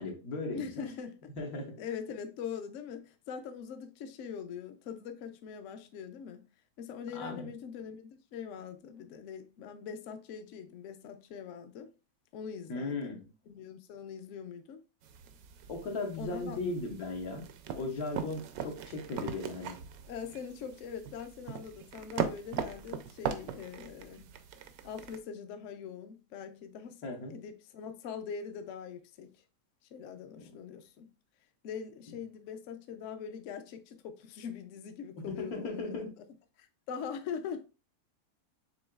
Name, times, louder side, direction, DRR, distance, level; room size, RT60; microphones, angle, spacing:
voice 1, 0.0-0.9 1.4-1.7 7.1-7.5 12.7-13.3 15.7-17.4 17.7-19.8 27.0-27.3 30.4-30.5 35.3-36.1, left 3 dB, 90° left, 1.7 m, -37 dB
voice 2, 0.5-1.3 1.8-6.4 6.8-11.9 12.3-13.1 13.5-14.8 16.2-16.6 20.1-24.3 24.8-27.0 27.3-29.3 29.9-31.1 31.6-36.1 36.6-37.6, left 7 dB, 70° left, 0.8 m, -42 dB
sound 1, 15.0-25.2, right 8 dB, 80° right, 1.1 m, -40 dB
6.1 x 3.8 x 2.3 m
omnidirectional pair, 1.5 m